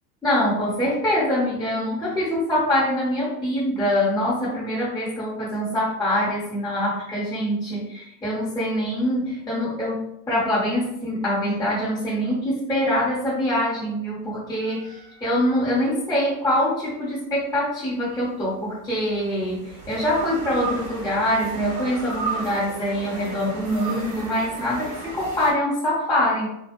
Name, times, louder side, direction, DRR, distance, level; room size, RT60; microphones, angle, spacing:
voice 1, 0.2-26.5, equal, 10° left, -7 dB, 0.8 m, -24 dB
sound 1, 14.6-16.1 18.0-25.5, right 4 dB, 30° right, 0.8 m, -35 dB
2.3 x 2.2 x 2.9 m, 0.83 s
hypercardioid pair, 80°, 48 cm